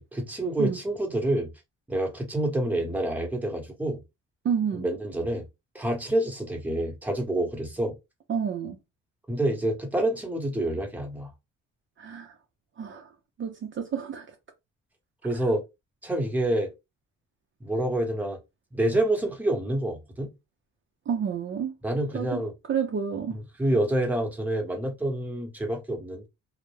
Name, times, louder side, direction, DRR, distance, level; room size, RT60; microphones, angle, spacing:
voice 1, 0.0-1.5 1.9-4.0 4.7-5.4 5.7-7.9 9.3-11.3 15.2-15.6 16.0-16.7 17.6-18.4 18.7-20.3 21.8-22.5 23.6-26.3, right 1 dB, 5° right, 0.9 m, -27 dB
voice 2, 4.4-4.9 8.3-8.8 12.0-12.3 12.8-13.1 13.4-14.3 21.1-21.7 22.1-22.4 22.7-23.4, right 7 dB, 40° right, 0.5 m, -29 dB
2.1 x 2.0 x 3.2 m
cardioid pair, 90°, 30 cm